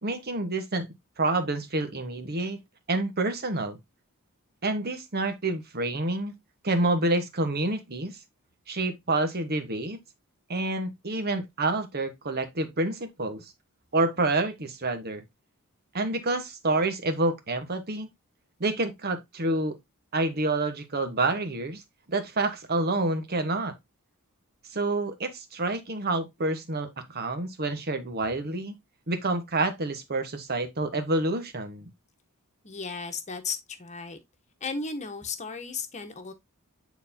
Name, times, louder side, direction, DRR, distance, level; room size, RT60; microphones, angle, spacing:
voice 1, 0.0-0.9 1.2-2.6 2.9-3.8 4.6-6.3 6.6-8.2 8.7-10.0 10.5-13.5 13.9-15.2 15.9-18.1 18.6-19.8 20.1-21.8 22.1-23.8 24.7-28.8 29.1-31.9, right 2 dB, 45° right, 1.3 m, -28 dB
voice 2, 32.6-34.2 34.6-36.3, left 4 dB, 30° left, 1.2 m, -35 dB
9.4 x 4.1 x 2.7 m
head